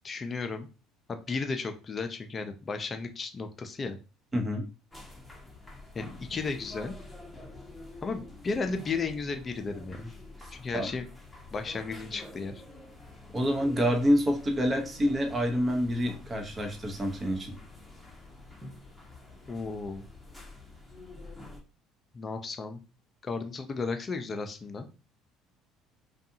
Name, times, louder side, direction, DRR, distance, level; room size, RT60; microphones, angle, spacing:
voice 1, 0.0-0.7 1.1-4.0 5.9-6.9 8.0-10.1 10.5-11.1 11.5-12.5 19.5-20.0 22.1-22.8 23.2-24.9, left 4 dB, 35° left, 7 dB, 0.5 m, -34 dB
voice 2, 4.3-4.7 10.7-10.9 13.3-17.6, equal, 25° right, 4 dB, 0.8 m, -27 dB
sound 1, 4.9-21.6, left 2 dB, 10° left, 0.9 m, -48 dB
2.6 x 2.3 x 2.7 m, 0.32 s
hypercardioid pair, 75°, 0 cm